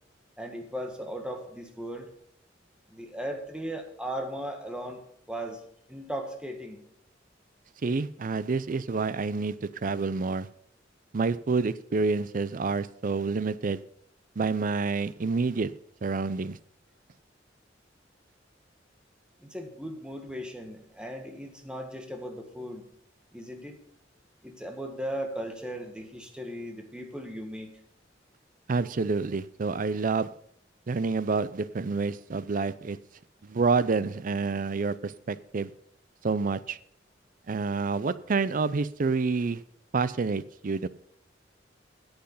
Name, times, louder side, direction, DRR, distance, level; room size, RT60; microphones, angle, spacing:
voice 1, 0.4-2.1 2.9-5.0 5.3-5.6 5.9-6.8 19.4-22.9 23.3-23.8 24.4-27.8, equal, 5° right, 3 dB, 1.6 m, -37 dB
voice 2, 7.8-10.5 11.1-13.8 14.4-15.7 16.0-16.6 28.7-30.3 30.9-33.0 33.4-35.7 36.2-36.8 37.5-39.6 39.9-40.9, right 4 dB, 45° right, 16 dB, 0.5 m, -28 dB
10.5 x 8.1 x 5.5 m, 0.68 s
head